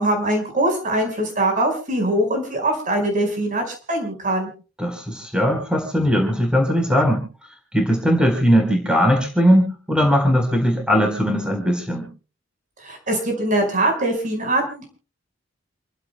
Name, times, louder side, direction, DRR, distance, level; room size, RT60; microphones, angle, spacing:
voice 1, 0.0-4.5 12.8-14.9, right 1 dB, 45° right, 4 dB, 4.9 m, -22 dB
voice 2, 4.8-7.2 7.7-12.1, equal, 5° right, 3 dB, 4.1 m, -19 dB
29.0 x 15.5 x 2.2 m, 0.36 s
head